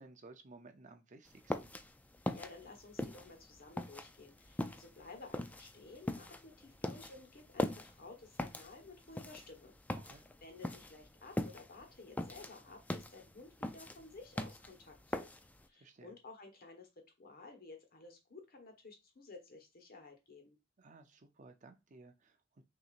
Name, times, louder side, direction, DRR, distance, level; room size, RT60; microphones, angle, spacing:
voice 1, 0.0-1.7 9.9-10.2 15.7-16.1 20.8-22.6, right 3 dB, 40° right, 0.6 m, -57 dB
sound 1, 1.3-15.6, left 1 dB, 10° left, 0.3 m, -41 dB
voice 2, 2.3-9.7 10.4-15.3 15.7-20.6, left 3 dB, 55° left, 1.2 m, -54 dB
5.9 x 2.8 x 2.5 m
head